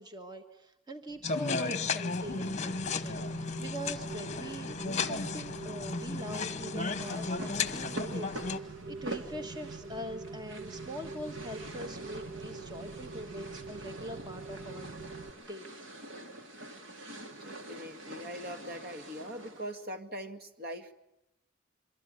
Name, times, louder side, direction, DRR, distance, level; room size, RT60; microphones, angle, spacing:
voice 1, 0.0-14.9 15.5-15.7, equal, 20° right, 6 dB, 1.4 m, -43 dB
sound 1, 1.2-8.6, left 4 dB, 35° left, 1.0 m, -34 dB
Rain, 2.2-15.3, right 4 dB, 90° right, 1.3 m, -44 dB
sound 2, 7.0-19.8, right 1 dB, 70° right, 3.1 m, -46 dB
voice 2, 17.4-20.9, equal, 50° right, 7 dB, 2.1 m, -42 dB
26.5 x 23.5 x 9.4 m, 0.89 s
head